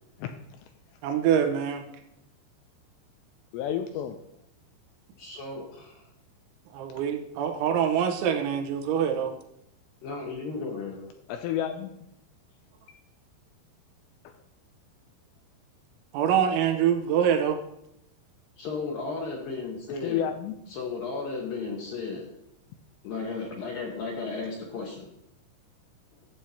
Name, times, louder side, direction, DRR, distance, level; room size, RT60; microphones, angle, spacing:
voice 1, 1.0-1.8 6.7-9.3 16.1-17.6, right 8 dB, 85° right, 5 dB, 3.2 m, -25 dB
voice 2, 3.5-4.2 11.3-11.9 14.2-14.3 20.0-20.6, left 10 dB, 85° left, 6 dB, 2.6 m, -30 dB
voice 3, 5.2-6.0 10.0-11.0 18.6-20.2 20.7-22.3 23.0-25.1, left 4 dB, 70° left, -1 dB, 2.3 m, -34 dB
11.5 x 7.6 x 2.8 m, 0.78 s
omnidirectional pair, 5.3 m